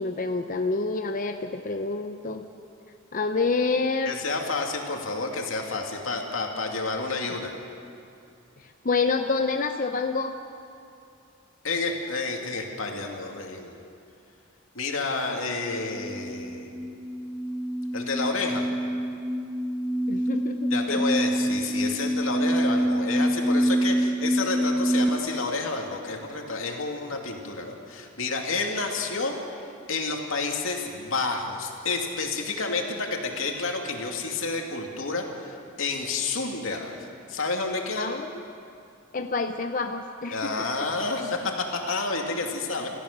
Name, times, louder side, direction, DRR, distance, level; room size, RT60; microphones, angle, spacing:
voice 1, 0.0-2.5 3.1-4.1 8.8-10.3 20.1-21.0 38.0-38.3 39.1-40.9 41.2-41.3, left 4 dB, 40° left, 6 dB, 0.7 m, -28 dB
voice 2, 4.1-7.5 11.6-13.8 14.7-16.9 17.9-18.7 20.7-36.9 37.3-38.1 40.3-42.9, left 3 dB, 85° left, 1 dB, 2.5 m, -30 dB
sound 1, 15.6-25.1, equal, 5° right, 1.3 m, -26 dB
28.0 x 14.5 x 6.7 m, 2.6 s
head